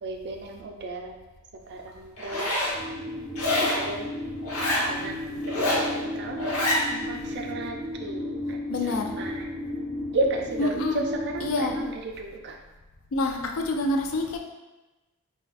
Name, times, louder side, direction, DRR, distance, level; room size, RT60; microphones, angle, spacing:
voice 1, 0.0-1.2 1.7-2.5 3.5-4.1 4.9-8.6 8.8-9.5 10.1-12.6, right 2 dB, 50° right, 3 dB, 0.4 m, -33 dB
Zipper (clothing), 2.2-2.7 3.4-3.8 4.4-4.9 5.4-5.9 6.4-6.8, left 1 dB, 85° left, 1.0 m, -26 dB
sound 1, 2.7-11.8, left 1 dB, 10° left, 0.9 m, -34 dB
voice 2, 8.7-9.2 10.6-11.0 11.4-11.8 13.1-14.4, left 2 dB, 65° left, 3 dB, 0.4 m, -27 dB
4.5 x 2.3 x 2.4 m, 1.1 s
head